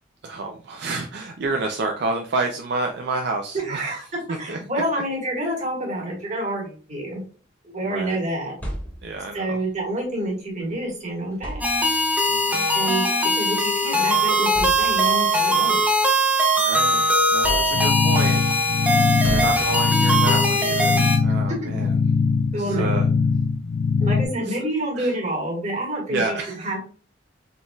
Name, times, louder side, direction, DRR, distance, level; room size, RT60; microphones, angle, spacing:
voice 1, 0.2-4.8 7.8-8.2 9.0-9.6 12.3-12.7 16.6-21.9 22.5-23.1 24.4-24.6 25.0-25.1 26.1-26.7, right 3 dB, 60° right, 3 dB, 0.4 m, -30 dB
voice 2, 3.6-4.0 4.4-7.2 7.6-8.5 9.3-11.6 12.7-15.8 21.7-21.8 22.5-22.9 24.0-26.2 26.6-26.8, right 1 dB, 40° right, -1 dB, 1.6 m, -28 dB
sound 1, 8.4-9.4 10.7-10.8 11.3-12.2 13.3-13.4 14.0-14.1 14.5-15.3 15.8-16.9 17.4-18.2 19.2-20.1, equal, 10° left, 1.3 m, -34 dB
sound 2, 11.6-21.2, equal, 10° right, 0.6 m, -21 dB
sound 3, 17.7-24.3, left 5 dB, 55° left, 0.3 m, -22 dB
4.0 x 3.8 x 2.3 m, 0.40 s
head